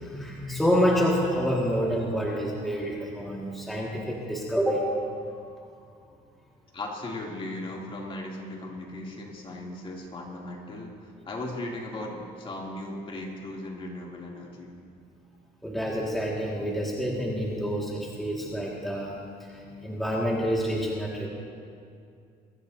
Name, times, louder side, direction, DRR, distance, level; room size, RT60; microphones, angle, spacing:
voice 1, 0.0-4.9 15.6-19.2 19.5-21.3, equal, ahead, -4 dB, 1.8 m, -28 dB
voice 2, 6.7-14.7, left 1 dB, 30° left, -2 dB, 2.7 m, -37 dB
23.0 x 13.5 x 2.7 m, 2.4 s
cardioid pair, 110°, 17 cm